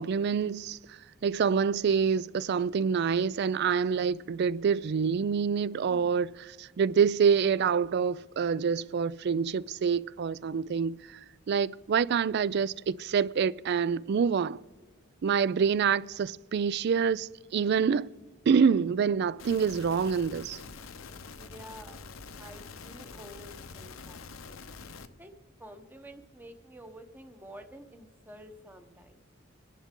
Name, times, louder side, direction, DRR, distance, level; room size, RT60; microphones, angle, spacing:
voice 1, 0.0-11.2 11.5-14.6 15.2-18.1 18.5-20.6, right 6 dB, 50° right, 0.3 m, -27 dB
sound 1, 19.4-25.1, left 4 dB, 75° left, 0.8 m, -45 dB
voice 2, 21.3-22.0 22.4-24.7 25.2-25.3 25.6-29.2, right 1 dB, 10° right, 0.9 m, -49 dB
25.5 x 11.0 x 3.7 m
head